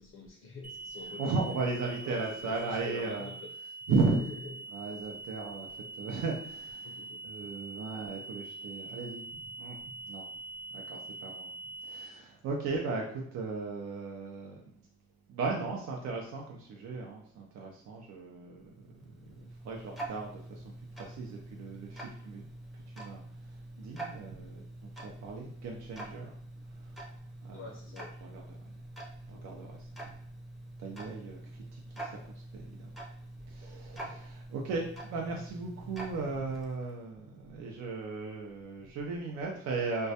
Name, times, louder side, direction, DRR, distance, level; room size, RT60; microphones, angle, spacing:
voice 1, 0.0-1.4 2.0-3.3 3.9-4.5 6.8-7.6 27.5-28.1 33.2-33.5, left 4 dB, 45° left, 1 dB, 0.5 m, -45 dB
sound 1, 0.6-12.1, right 3 dB, 25° right, 0.8 m, -44 dB
voice 2, 1.2-3.3 3.9-4.2 4.7-9.8 10.1-10.3 10.7-11.5 11.8-14.8 15.3-20.6 20.9-22.4 22.9-26.3 26.8-27.0 27.4-27.7 28.2-28.6 29.3-29.9 30.8-32.9 33.5-40.1, right 4 dB, 65° right, 0 dB, 0.5 m, -36 dB
Tick-tock, 18.7-37.0, right 1 dB, ahead, 0.5 m, -46 dB
2.2 x 2.1 x 2.7 m, 0.66 s
cardioid pair, 90°, 30 cm